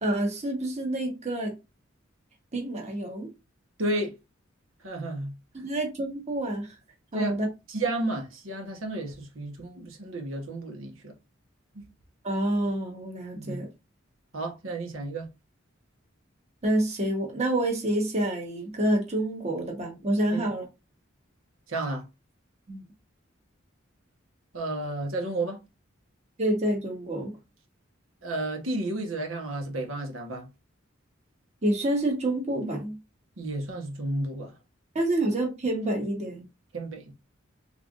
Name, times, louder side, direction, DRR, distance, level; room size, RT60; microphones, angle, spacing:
voice 1, 0.0-1.5 2.5-3.3 5.5-6.7 7.1-7.5 12.2-13.7 16.6-20.7 22.7-22.8 26.4-27.3 31.6-33.0 34.9-36.4, right 1 dB, 35° right, 1.2 m, -28 dB
voice 2, 3.8-4.2 4.8-5.3 7.1-7.4 7.7-11.1 11.7-11.9 13.3-13.6 14.3-15.3 20.3-20.5 21.7-22.0 24.5-25.6 28.2-30.5 33.4-34.5 36.7-37.1, right 2 dB, 80° right, 1.1 m, -32 dB
3.6 x 3.4 x 2.5 m
head